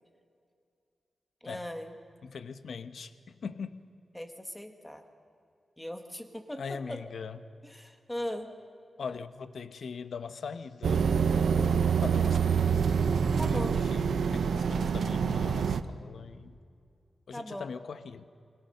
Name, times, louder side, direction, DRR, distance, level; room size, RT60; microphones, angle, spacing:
voice 1, 1.4-1.9 4.1-5.0 5.8-7.0 7.6-8.5 13.4-14.0 17.3-17.7, left 1 dB, 10° left, 6 dB, 1.5 m, -39 dB
voice 2, 2.2-3.1 3.4-3.9 6.6-7.4 9.0-12.8 13.5-16.6 17.3-18.3, left 5 dB, 70° left, 11 dB, 0.9 m, -41 dB
sound 1, 10.8-15.8, right 6 dB, 90° right, 0.8 m, -26 dB
28.5 x 22.0 x 6.6 m, 2.4 s
wide cardioid pair, 175°, 0 cm